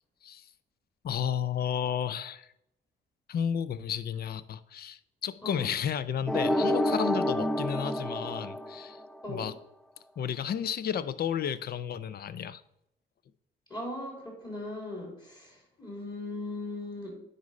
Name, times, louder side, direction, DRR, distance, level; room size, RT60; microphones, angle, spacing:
voice 1, 1.0-2.5 3.3-9.0 9.3-9.5 10.2-12.6, left 8 dB, 50° left, 15 dB, 0.5 m, -32 dB
sound 1, 6.3-9.2, left 1 dB, ahead, 0.4 m, -28 dB
voice 2, 13.7-17.2, left 2 dB, 20° left, -1 dB, 3.1 m, -38 dB
9.4 x 4.1 x 5.2 m, 0.79 s
cardioid pair, 90°, 20 cm